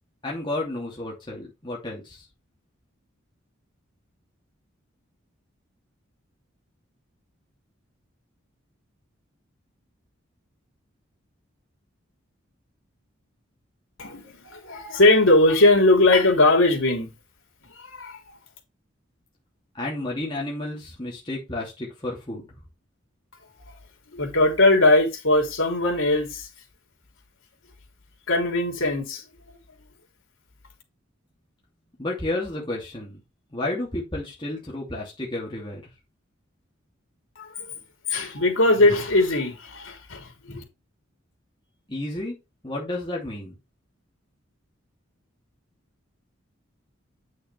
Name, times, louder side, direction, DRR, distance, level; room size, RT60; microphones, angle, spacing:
voice 1, 0.2-2.2 19.7-22.4 32.0-33.2 33.5-35.9 41.9-42.4 42.6-43.6, left 2 dB, 25° left, 2.8 m, -31 dB
voice 2, 14.0-17.1 17.8-18.2 24.1-26.5 28.3-29.2 37.4-37.7 38.1-40.6, left 2 dB, 85° left, 3.4 m, -20 dB
8.8 x 6.4 x 3.4 m
head